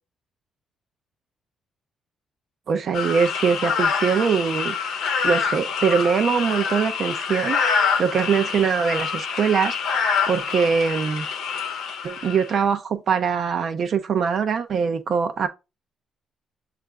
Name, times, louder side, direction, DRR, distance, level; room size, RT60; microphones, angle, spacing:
voice 1, 2.7-4.8 5.2-9.8 10.3-11.2 12.0-15.5, right 6 dB, 55° right, 0.5 m, -22 dB
sound 1, 2.9-12.6, left 6 dB, 80° left, 0.7 m, -26 dB
6.4 x 2.4 x 3.3 m
cardioid pair, 90°, 0 cm